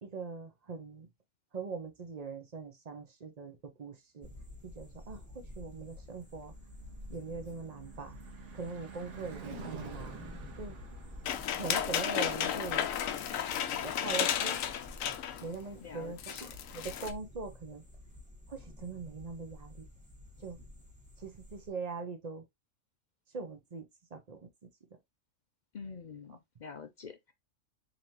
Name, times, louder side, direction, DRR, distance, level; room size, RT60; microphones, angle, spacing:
voice 1, 0.0-1.1 1.5-4.3 4.6-6.5 7.1-8.2 8.5-10.2 10.6-10.7 11.5-12.9 13.8-14.6 15.4-17.8 18.5-19.9 20.4-20.6 21.2-22.4 23.3-23.8 24.1-24.5, right 4 dB, 35° right, 0.8 m, -42 dB
sound 1, 4.2-21.7, left 1 dB, 5° right, 1.3 m, -51 dB
Car passing by / Truck / Engine, 5.5-15.7, right 6 dB, 65° right, 1.2 m, -51 dB
sound 2, 11.3-15.5 15.8-15.9 16.2-17.1, left 9 dB, 85° left, 1.0 m, -33 dB
voice 2, 15.8-16.5 25.7-27.3, left 5 dB, 55° left, 0.5 m, -47 dB
4.0 x 3.3 x 2.8 m
omnidirectional pair, 1.3 m